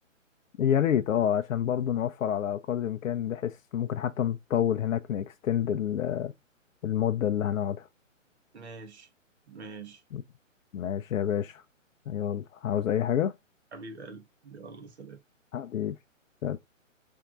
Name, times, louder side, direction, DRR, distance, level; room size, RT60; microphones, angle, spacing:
voice 1, 0.6-6.3 6.8-7.9 10.1-10.2 10.7-11.6 12.1-13.3 15.5-16.0 16.4-16.6, left 10 dB, 80° left, 0.5 m, -28 dB
voice 2, 8.5-9.1 9.5-10.0 13.7-15.2, right 3 dB, 55° right, 1.4 m, -44 dB
5.5 x 3.5 x 2.4 m
hypercardioid pair, 155°, 39 cm